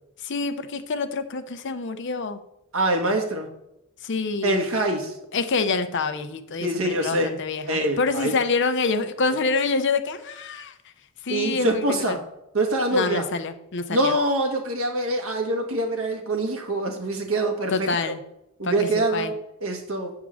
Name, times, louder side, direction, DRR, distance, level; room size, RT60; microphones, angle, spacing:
voice 1, 0.2-2.4 4.0-4.6 5.3-10.7 11.2-12.2 12.9-14.1 17.7-18.2 18.6-19.3, left 4 dB, 60° left, 9 dB, 0.7 m, -26 dB
voice 2, 2.7-3.5 4.4-5.1 6.6-7.3 7.7-8.3 11.3-12.2 12.5-13.2 13.9-18.1 18.6-20.1, right 1 dB, 80° right, 2 dB, 1.6 m, -24 dB
8.2 x 3.7 x 6.3 m, 0.87 s
head